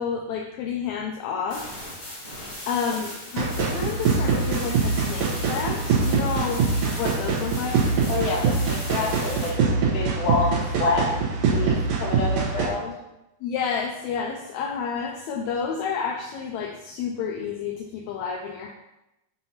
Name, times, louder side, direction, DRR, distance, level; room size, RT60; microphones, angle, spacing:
voice 1, 0.0-1.8 2.7-7.9 13.4-18.7, left 6 dB, 75° left, 1 dB, 1.7 m, -30 dB
sound 1, 1.5-9.5, left 1 dB, 35° left, 0.8 m, -38 dB
sound 2, 3.4-12.6, right 4 dB, 90° right, 2.9 m, -24 dB
voice 2, 8.1-11.1 11.4-12.9, left 3 dB, 60° left, -1 dB, 2.0 m, -28 dB
7.0 x 2.9 x 5.6 m, 0.92 s
omnidirectional pair, 3.7 m